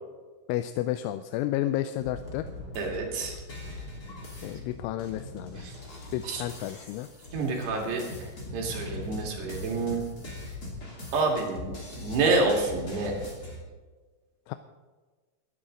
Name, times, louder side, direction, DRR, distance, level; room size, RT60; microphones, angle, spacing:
voice 1, 0.5-2.5 4.4-5.7 6.1-7.1 14.5-14.6, left 13 dB, 90° left, 10 dB, 3.0 m, -31 dB
sound 1, 2.0-13.6, left 2 dB, 25° left, 2.5 m, -41 dB
voice 2, 2.8-3.4 5.6-5.7 6.3-6.4 7.3-10.0 11.1-13.1, right 3 dB, 65° right, 0 dB, 4.1 m, -28 dB
21.5 x 11.0 x 3.8 m, 1.4 s
omnidirectional pair, 5.4 m